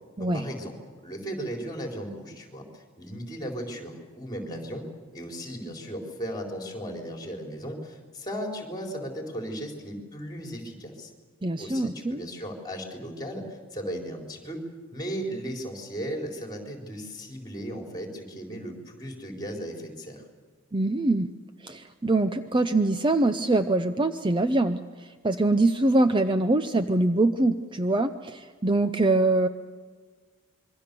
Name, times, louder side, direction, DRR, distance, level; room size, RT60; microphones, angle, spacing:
voice 1, 0.2-0.7 1.0-4.8 5.1-11.1 11.6-20.2, equal, 20° left, 2 dB, 4.2 m, -36 dB
voice 2, 11.4-12.2 20.7-21.3 21.6-24.8 25.2-29.5, right 2 dB, 20° right, 9 dB, 0.6 m, -23 dB
26.5 x 23.0 x 6.9 m, 1.5 s
head